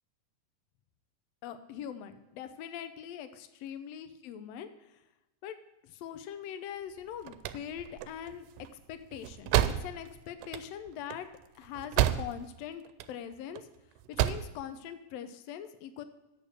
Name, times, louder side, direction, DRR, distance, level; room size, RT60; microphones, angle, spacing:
voice 1, 1.4-5.0 5.4-5.6 5.8-8.5 8.7-9.5 9.8-11.3 11.5-12.8 13.1-13.7 14.1-16.0, left 9 dB, 80° left, 10 dB, 1.5 m, -42 dB
sound 1, 7.0-12.6 12.9-13.6 14.0-14.6, right 12 dB, 90° right, 2.1 m, -31 dB
8.5 x 6.8 x 6.5 m, 0.97 s
omnidirectional pair, 3.6 m